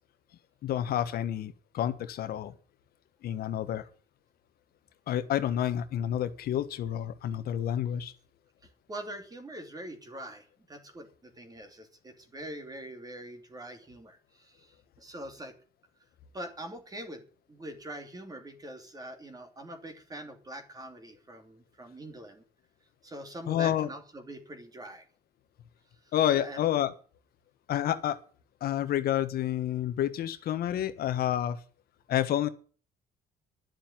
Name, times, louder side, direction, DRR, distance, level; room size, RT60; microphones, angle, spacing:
voice 1, 0.6-2.5 3.2-3.8 5.1-8.1 23.5-23.9 26.1-26.9 27.7-28.2 28.6-31.6 32.1-32.5, left 11 dB, 65° left, 1.4 m, -29 dB
voice 2, 8.9-15.5 16.3-17.2 17.5-22.4 23.0-25.0 26.3-26.6, right 1 dB, 20° right, 2.8 m, -43 dB
11.0 x 7.5 x 9.5 m
cardioid pair, 110°, 17 cm